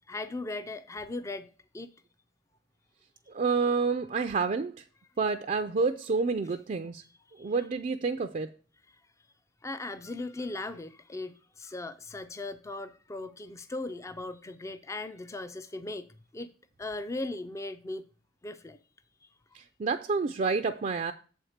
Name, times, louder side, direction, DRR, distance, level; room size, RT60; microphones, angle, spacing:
voice 1, 0.1-1.5 1.7-1.9 7.4-7.5 8.9-9.0 9.6-16.1 16.3-16.5 16.8-18.0 18.4-18.8, left 2 dB, 15° left, 0.4 m, -38 dB
voice 2, 3.3-4.8 5.2-7.0 7.4-8.5 19.5-21.1, right 4 dB, 45° right, 0.4 m, -29 dB
7.2 x 4.5 x 6.4 m
head